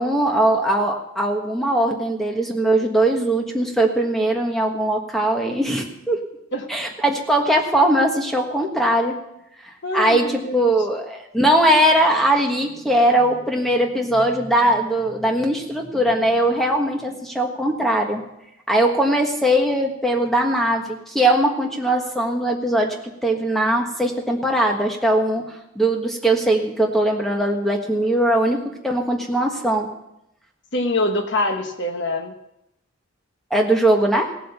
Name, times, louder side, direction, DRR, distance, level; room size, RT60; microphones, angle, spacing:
voice 1, 0.0-6.2 6.7-9.2 9.6-18.2 18.7-29.9 33.5-34.3, right 1 dB, ahead, 1 dB, 1.4 m, -20 dB
voice 2, 9.8-10.7 30.7-32.3, left 1 dB, 55° left, 4 dB, 1.1 m, -24 dB
17.0 x 7.7 x 6.8 m, 0.84 s
head